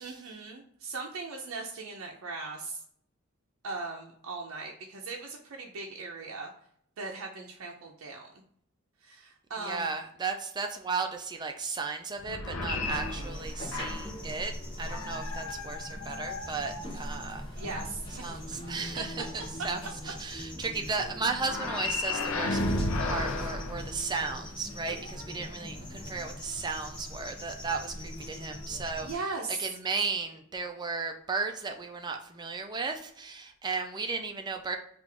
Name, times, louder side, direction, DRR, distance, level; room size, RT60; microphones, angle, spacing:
voice 1, 0.0-2.8 3.6-6.5 7.0-8.3 9.0-9.9 17.6-18.4 29.0-29.6, right 3 dB, 80° right, 0 dB, 0.5 m, -39 dB
voice 2, 9.6-14.5 14.8-17.4 18.2-19.3 19.6-22.6 23.0-34.8, right 4 dB, 20° right, 4 dB, 0.4 m, -35 dB
sound 1, 12.2-14.2 14.9-17.3 21.4-24.5, left 2 dB, 70° left, 0.5 m, -34 dB
sound 2, 12.9-29.1, left 1 dB, 20° left, 1.0 m, -41 dB
3.3 x 2.5 x 3.6 m, 0.66 s
head